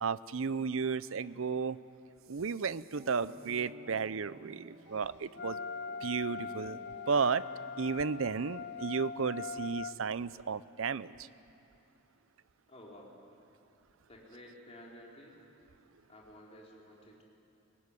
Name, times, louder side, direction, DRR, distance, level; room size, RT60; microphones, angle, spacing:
voice 1, 0.0-1.8 2.3-5.6 6.0-7.4 7.8-11.3, right 5 dB, 60° right, 17 dB, 0.6 m, -33 dB
sound 1, 2.9-8.6, right 2 dB, 30° right, 1.4 m, -54 dB
Wind instrument woodwind instrument, 5.3-10.0, left 5 dB, 50° left, 0.5 m, -41 dB
voice 2, 12.7-13.2 14.1-15.5 16.1-17.2, left 1 dB, 30° left, -2 dB, 4.3 m, -53 dB
23.0 x 20.0 x 9.8 m, 2.9 s
head